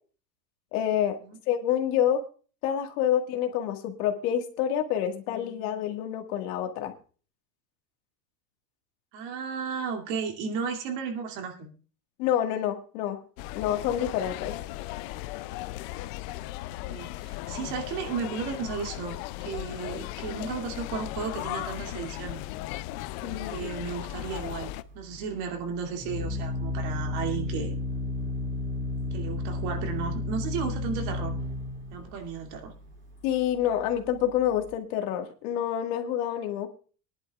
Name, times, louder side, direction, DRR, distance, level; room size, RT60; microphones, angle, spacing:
voice 1, 0.7-1.2 1.5-2.2 2.6-6.9 12.2-13.2 13.5-14.5 23.2-23.6 33.2-36.7, left 10 dB, 70° left, 5 dB, 1.9 m, -27 dB
voice 2, 9.1-11.7 16.8-22.4 23.2-27.7 29.1-31.4 31.9-32.7, right 6 dB, 60° right, 4 dB, 2.6 m, -34 dB
sound 1, 13.4-24.8, left 17 dB, 50° left, 0.5 m, -37 dB
Organ, 24.2-34.7, left 2 dB, 25° right, 2.9 m, -33 dB
21.5 x 11.0 x 2.4 m, 0.38 s
supercardioid pair, 150°, 46 cm